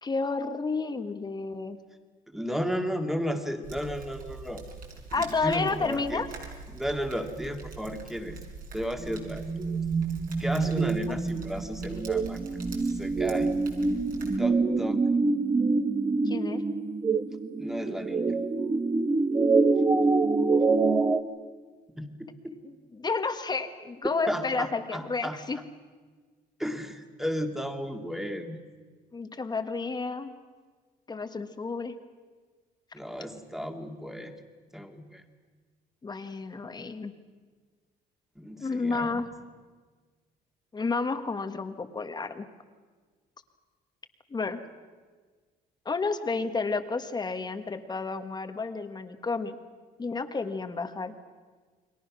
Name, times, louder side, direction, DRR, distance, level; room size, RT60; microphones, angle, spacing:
voice 1, 0.0-1.8 5.1-6.3 11.1-11.2 16.2-16.6 22.9-25.6 29.1-30.4 31.1-31.9 36.0-37.1 38.6-39.3 40.7-42.5 44.3-44.6 45.8-49.6 50.0-51.1, left 4 dB, 25° left, 8 dB, 1.5 m, -31 dB
voice 2, 2.3-4.6 5.2-6.2 6.7-8.4 8.7-9.4 10.4-12.4 13.0-13.5 14.4-15.0 17.6-18.4 22.0-22.6 24.3-25.4 26.6-28.6 32.9-34.3 34.7-35.2 38.4-39.2, equal, ahead, 5 dB, 2.3 m, -33 dB
sound 1, 3.6-14.4, right 4 dB, 55° right, 5.6 m, -44 dB
sound 2, 9.0-21.2, right 3 dB, 25° right, 1.4 m, -26 dB
29.5 x 22.0 x 6.2 m, 1.5 s
cardioid pair, 110°, 17 cm